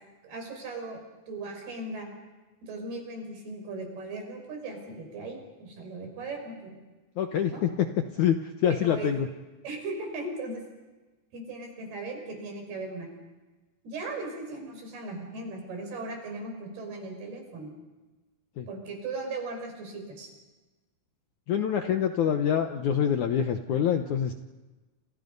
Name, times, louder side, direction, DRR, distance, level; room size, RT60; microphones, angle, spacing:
voice 1, 0.2-1.0 1.3-2.1 2.6-6.8 7.5-7.6 8.6-9.1 9.6-10.6 11.3-13.1 13.8-17.7 18.7-20.3, right 2 dB, 70° right, 3 dB, 7.8 m, -38 dB
voice 2, 7.2-7.9 8.1-9.3 18.6-18.7 21.5-24.3, left 9 dB, 70° left, 6 dB, 2.0 m, -26 dB
30.0 x 30.0 x 5.4 m, 1.2 s
omnidirectional pair, 4.7 m